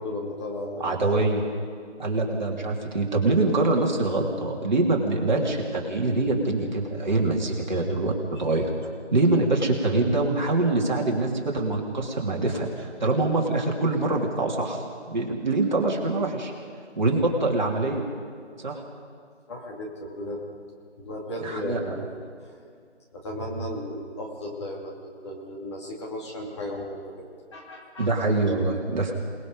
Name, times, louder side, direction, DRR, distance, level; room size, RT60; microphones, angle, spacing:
voice 1, 0.0-0.8 7.7-7.8 19.5-20.4 21.0-22.5 23.1-27.2 27.5-28.1, left 1 dB, 25° left, -3 dB, 2.6 m, -35 dB
voice 2, 0.8-1.4 2.0-8.1 8.4-8.7 9.1-16.5 17.0-18.0 18.6-18.8 21.4-21.9 28.0-29.1, right 2 dB, 40° right, -1 dB, 3.1 m, -24 dB
28.0 x 20.0 x 5.3 m, 2.2 s
figure-of-eight pair, 165°, 35 cm